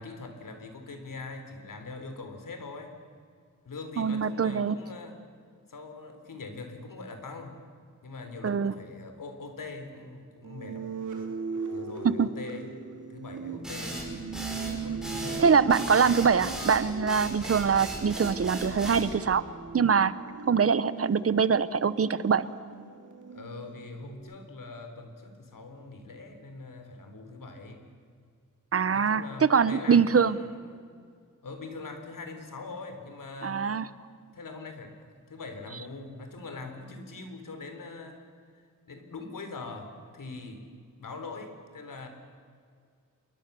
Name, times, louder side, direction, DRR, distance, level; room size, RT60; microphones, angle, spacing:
voice 1, 0.0-3.0 3.7-5.2 5.7-7.6 8.0-10.9 11.7-12.8 13.1-14.0 14.8-15.5 23.3-27.8 28.9-30.9 31.4-33.7 34.3-38.2 38.9-40.7 41.0-42.1, left 3 dB, 85° left, 6 dB, 3.6 m, -42 dB
voice 2, 4.0-4.8 8.4-8.7 12.0-12.3 15.4-19.4 19.7-20.1 20.5-22.5 28.7-30.4 33.4-33.9, right 6 dB, 45° right, 16 dB, 0.8 m, -23 dB
sound 1, 10.4-24.1, right 5 dB, 65° right, 2.7 m, -39 dB
sound 2, 13.6-19.1, right 1 dB, ahead, 5.3 m, -37 dB
28.0 x 22.0 x 6.9 m, 2.2 s
wide cardioid pair, 180°, 32 cm